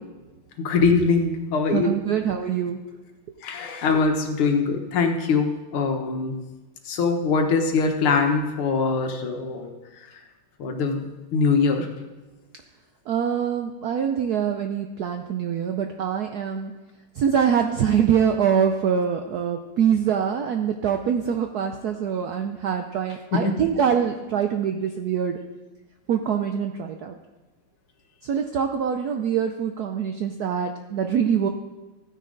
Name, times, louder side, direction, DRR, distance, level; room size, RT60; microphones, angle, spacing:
voice 1, 0.6-2.0 3.4-6.3 6.9-9.7 10.6-11.9 23.3-23.6, left 4 dB, 80° left, 4 dB, 2.1 m, -22 dB
voice 2, 1.7-2.8 13.1-16.7 17.2-25.4 26.1-27.2 28.2-31.5, right 8 dB, 75° right, 5 dB, 0.9 m, -24 dB
14.5 x 9.7 x 3.8 m, 1.1 s
omnidirectional pair, 2.4 m